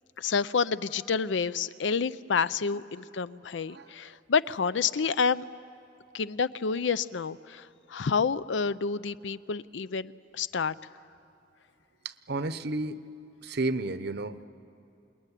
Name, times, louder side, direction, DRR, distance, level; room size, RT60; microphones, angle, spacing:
voice 1, 0.2-5.4 6.1-10.7, left 5 dB, 75° left, 16 dB, 0.5 m, -29 dB
voice 2, 12.0-13.0 13.4-14.5, right 2 dB, 60° right, 12 dB, 0.9 m, -32 dB
27.0 x 21.5 x 10.0 m, 2.6 s
head